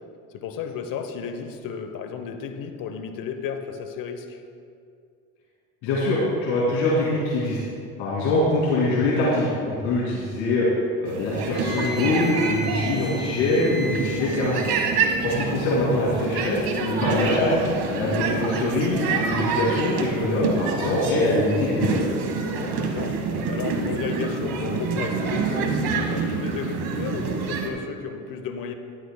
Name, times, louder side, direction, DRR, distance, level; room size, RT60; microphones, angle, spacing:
voice 1, 0.3-4.4 13.6-13.9 14.9-15.2 22.6-28.7, left 6 dB, 55° left, 7 dB, 1.0 m, -33 dB
voice 2, 5.8-7.6 8.0-10.7 11.0-14.6 15.2-17.6 17.9-22.0, left 2 dB, 70° left, -7 dB, 2.6 m, -23 dB
sound 1, 11.0-27.7, right 4 dB, 60° right, 1.5 m, -27 dB
Wind instrument woodwind instrument, 11.5-15.0, left 1 dB, 45° right, 1.9 m, -36 dB
13.0 x 12.0 x 2.2 m, 2.3 s
supercardioid pair, 80°, 41 cm